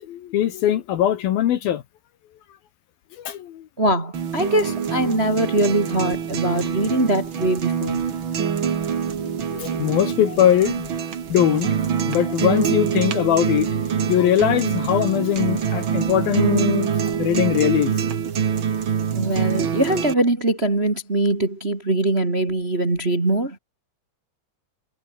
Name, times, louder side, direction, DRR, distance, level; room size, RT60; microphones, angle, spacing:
voice 1, 0.0-1.8 3.2-3.7 9.1-11.7 12.1-18.1 19.3-19.6, left 11 dB, 65° left, 2.8 m, -21 dB
voice 2, 3.8-8.0 19.1-23.6, right 1 dB, 20° right, 1.8 m, -22 dB
sound 1, 4.1-20.1, right 7 dB, 55° right, 1.4 m, -25 dB
omnidirectional pair, 5.1 m